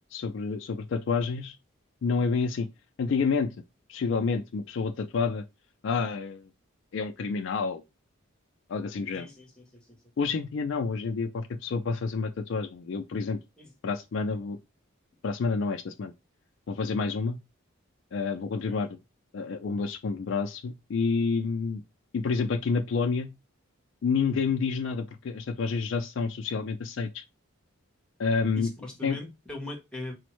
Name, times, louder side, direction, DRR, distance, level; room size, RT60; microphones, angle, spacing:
voice 1, 0.1-1.6 2.0-2.7 3.0-3.5 3.9-5.4 5.8-6.5 6.9-7.8 8.7-9.3 10.2-13.4 13.8-14.6 15.2-16.1 16.7-17.4 18.1-19.0 19.3-21.8 22.1-23.3 24.0-27.2 28.2-28.7 29.0-29.2, left 4 dB, 60° left, 0.3 m, -29 dB
voice 2, 9.1-10.0 13.6-13.7 18.5-18.8 28.5-30.2, left 2 dB, 5° left, 0.8 m, -40 dB
4.2 x 2.1 x 3.0 m
head